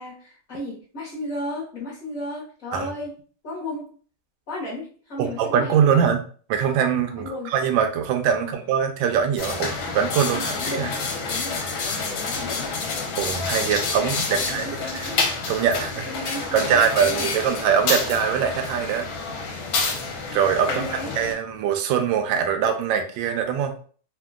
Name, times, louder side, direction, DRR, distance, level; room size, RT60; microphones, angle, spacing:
voice 1, 0.0-3.2 3.4-3.9 4.5-6.1 7.2-7.5 8.4-8.6 10.2-10.9 11.3-12.7 14.3-15.1 16.1-17.3 20.7-21.1, left 1 dB, 55° left, -7 dB, 1.1 m, -34 dB
voice 2, 5.2-6.2 6.5-10.9 13.2-15.1 15.5-19.1 20.3-23.7, right 7 dB, 75° right, 6 dB, 1.2 m, -23 dB
sound 1, 9.4-21.3, left 4 dB, 75° left, 1.4 m, -28 dB
3.5 x 2.2 x 2.3 m, 0.42 s
omnidirectional pair, 2.3 m